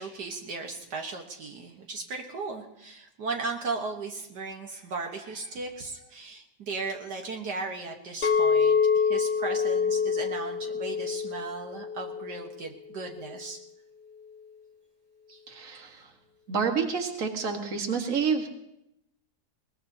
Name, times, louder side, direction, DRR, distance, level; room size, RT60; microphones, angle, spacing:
voice 1, 0.0-13.6 15.3-15.4, right 3 dB, 75° right, 2 dB, 1.8 m, -36 dB
Chink clink, 8.2-12.5 13.0-13.4, left 6 dB, 40° left, 0.8 m, -26 dB
voice 2, 15.5-16.1 16.5-18.5, right 5 dB, 50° right, 3 dB, 1.9 m, -28 dB
21.5 x 19.5 x 2.8 m, 0.84 s
omnidirectional pair, 1.8 m